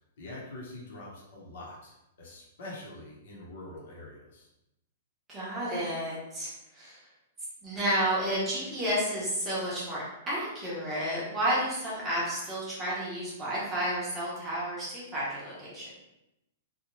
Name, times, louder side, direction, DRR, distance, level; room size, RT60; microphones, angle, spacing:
voice 1, 0.2-4.5, left 2 dB, 60° left, -4 dB, 1.0 m, -44 dB
voice 2, 5.3-7.0 7.6-15.9, right 1 dB, 10° right, -8 dB, 0.8 m, -31 dB
2.8 x 2.3 x 3.0 m, 0.89 s
hypercardioid pair, 170°, 0 cm